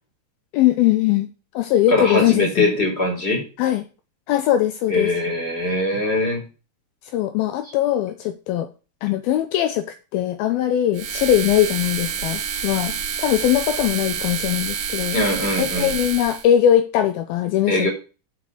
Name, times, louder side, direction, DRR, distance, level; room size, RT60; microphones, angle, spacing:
voice 1, 0.5-1.3 1.5-2.7 3.6-3.9 4.3-5.1 7.0-8.7 9.0-15.2 15.6-17.9, left 11 dB, 85° left, 9 dB, 2.2 m, -20 dB
voice 2, 1.9-3.4 4.9-6.4 15.1-15.9 17.7-17.9, left 2 dB, 15° left, 1 dB, 3.3 m, -21 dB
sound 1, 10.9-16.5, right 7 dB, 55° right, 1.6 m, -28 dB
11.0 x 6.0 x 4.9 m, 0.33 s
omnidirectional pair, 5.0 m